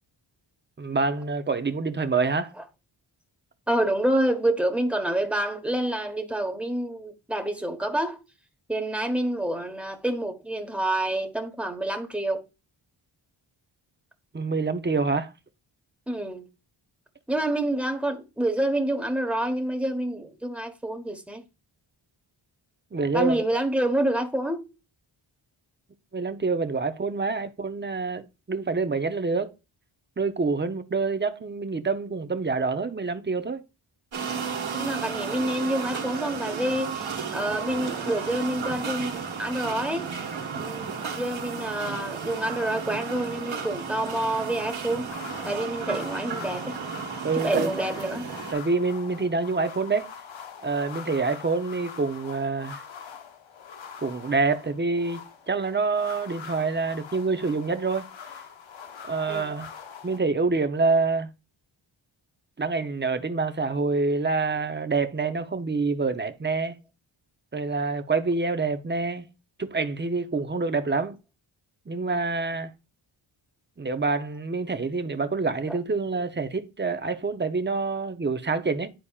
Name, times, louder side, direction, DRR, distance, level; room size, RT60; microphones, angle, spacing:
voice 1, 0.8-2.5 14.3-15.3 22.9-23.4 26.1-29.5 30.2-33.6 47.2-47.7 48.5-50.1 50.6-52.8 54.0-58.1 59.0-59.7 60.0-61.3 62.6-66.8 67.5-69.3 69.6-71.2 71.9-72.7 73.8-78.9, right 4 dB, 20° right, 0.7 m, -26 dB
voice 2, 3.7-8.2 8.7-12.4 16.1-16.5 17.3-21.4 23.1-24.6 34.7-40.1 40.5-45.1 45.4-46.7 47.3-48.3 59.3-59.5 75.7-75.8, right 1 dB, 5° right, 1.2 m, -27 dB
sound 1, 34.1-48.5, right 6 dB, 65° right, 1.4 m, -33 dB
sound 2, 45.1-60.2, left 7 dB, 65° left, 0.9 m, -43 dB
10.0 x 4.2 x 2.4 m
cardioid pair, 65°, 49 cm